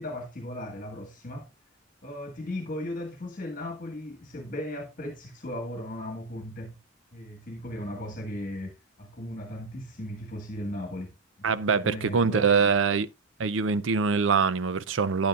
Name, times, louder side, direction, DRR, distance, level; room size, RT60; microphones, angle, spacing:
voice 1, 0.0-1.5 2.0-6.8 7.1-11.1 11.4-12.7, left 1 dB, 45° left, 1.7 m, -37 dB
voice 2, 11.4-13.1 13.4-15.3, right 5 dB, 85° right, 0.5 m, -24 dB
10.0 x 9.3 x 2.4 m
head